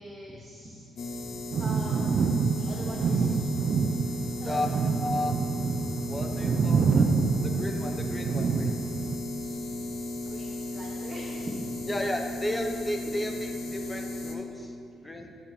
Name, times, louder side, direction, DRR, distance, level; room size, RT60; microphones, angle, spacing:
voice 1, 0.0-3.9 4.3-4.7 5.5-5.6 8.9-11.9 13.0-13.1 15.0-15.3, right 1 dB, 20° right, -4 dB, 1.3 m, -44 dB
sound 1, 1.0-14.4, left 1 dB, 60° left, 1.0 m, -35 dB
sound 2, 1.5-9.2, right 5 dB, 60° right, 0.5 m, -27 dB
voice 2, 5.0-5.4 6.1-7.1 7.4-8.7 11.9-15.3, left 1 dB, 15° left, 3 dB, 1.1 m, -33 dB
11.0 x 5.7 x 4.2 m, 2.3 s
cardioid pair, 90°, 0 cm